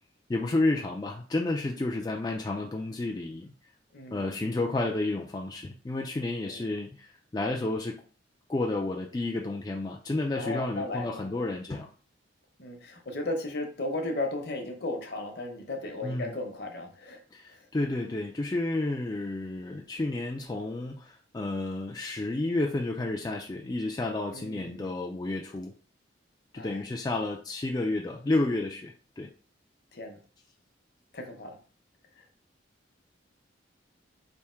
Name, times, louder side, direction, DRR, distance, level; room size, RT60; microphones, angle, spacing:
voice 1, 0.3-3.5 4.1-8.0 8.5-11.9 16.0-16.3 17.3-25.7 26.5-29.3, left 2 dB, 20° left, 0 dB, 0.3 m, -31 dB
voice 2, 3.9-4.4 6.4-6.8 10.4-11.5 12.6-17.2 17.5-17.7 24.3-24.9 26.5-26.8 29.9-30.2 31.1-31.6 32.2-32.3, left 2 dB, 55° left, 3 dB, 0.9 m, -36 dB
3.5 x 2.6 x 4.3 m, 0.39 s
head